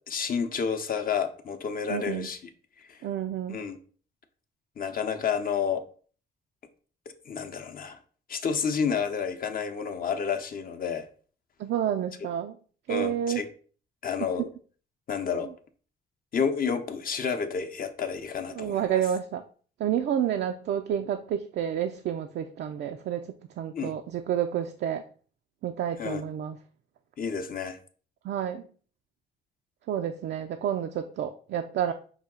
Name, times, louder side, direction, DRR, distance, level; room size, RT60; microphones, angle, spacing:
voice 1, 0.0-2.4 2.8-3.0 3.5-3.8 4.8-5.8 7.3-8.0 8.3-11.1 12.9-13.5 14.0-14.5 15.1-15.5 16.3-18.9 23.7-23.9 26.0-26.2 27.2-27.8, left 6 dB, 45° left, 7 dB, 0.7 m, -30 dB
voice 2, 1.9-2.3 3.0-3.6 11.6-12.6 12.9-13.4 18.6-19.4 19.8-25.0 25.6-26.6 28.2-28.6 29.9-31.9, right 9 dB, 65° right, 5 dB, 0.4 m, -29 dB
5.6 x 2.3 x 3.7 m, 0.42 s
cardioid pair, 90°, 20 cm